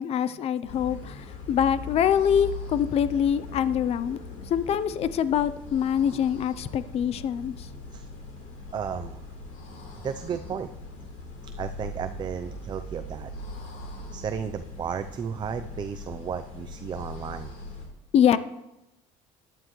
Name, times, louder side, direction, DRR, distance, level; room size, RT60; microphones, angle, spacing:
voice 1, 0.0-4.2 4.5-7.7 18.1-18.4, left 8 dB, 45° left, 15 dB, 0.5 m, -24 dB
sound 1, 0.6-17.9, left 3 dB, 70° left, 3.5 m, -40 dB
voice 2, 8.7-9.3 10.0-10.7 11.6-13.3 14.1-17.6, right 7 dB, 30° right, 10 dB, 0.5 m, -34 dB
15.0 x 11.0 x 3.1 m, 0.92 s
cardioid pair, 115°, 14 cm